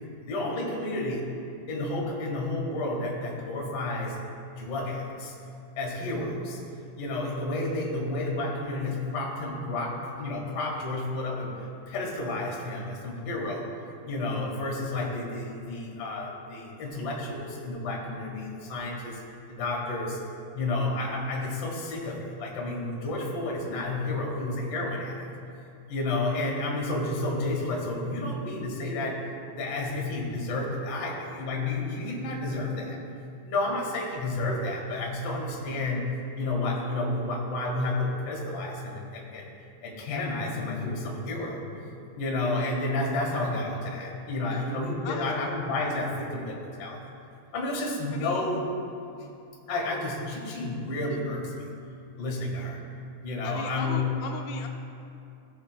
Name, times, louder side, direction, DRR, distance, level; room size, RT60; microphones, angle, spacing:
voice 1, 0.2-1.2 1.7-4.2 4.6-5.3 5.8-6.6 7.0-13.7 14.0-19.2 19.6-20.2 20.5-25.3 25.9-33.0 33.4-36.0 36.4-39.5 39.8-41.6 42.2-47.1 47.5-48.7 49.7-51.6 52.2-52.8 53.2-54.1, left 2 dB, 45° left, -1 dB, 2.4 m, -31 dB
voice 2, 45.0-45.3 48.1-48.6 53.4-54.7, left 6 dB, 85° left, 2 dB, 2.6 m, -38 dB
17.5 x 7.0 x 2.2 m, 2.6 s
omnidirectional pair, 4.4 m